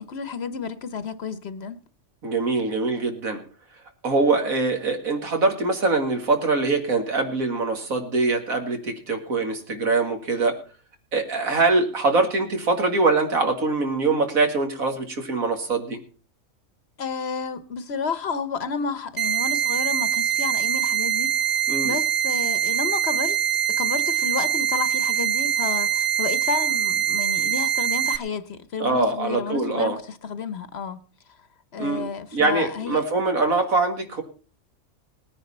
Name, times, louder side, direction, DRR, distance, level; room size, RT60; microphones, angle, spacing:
voice 1, 0.0-1.8 17.0-23.4 23.8-30.0 30.2-31.0 31.7-33.0, left 5 dB, 55° left, 1.0 m, -31 dB
voice 2, 2.2-3.4 4.0-10.6 11.1-16.0 21.7-21.9 28.8-30.0 31.8-32.0 32.3-34.2, right 3 dB, 80° right, 2.4 m, -23 dB
sound 1, 19.2-28.2, right 10 dB, 45° right, 0.9 m, -23 dB
19.0 x 10.0 x 4.2 m
omnidirectional pair, 1.4 m